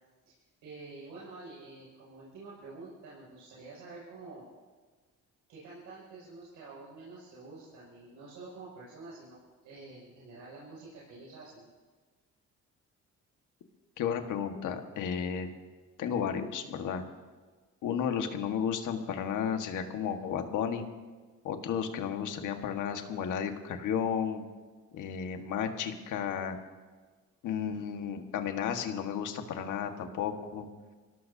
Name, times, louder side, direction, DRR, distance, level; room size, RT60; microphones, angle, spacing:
voice 1, 0.6-4.4 5.5-9.4 9.6-11.7, right 3 dB, 85° right, -6 dB, 6.6 m, -48 dB
voice 2, 14.0-15.5 16.0-17.0 17.8-20.9 21.4-24.4 24.9-26.6 27.4-30.7, left 8 dB, 85° left, 5 dB, 1.7 m, -33 dB
25.0 x 17.5 x 2.8 m, 1.4 s
cardioid pair, 90°, 30 cm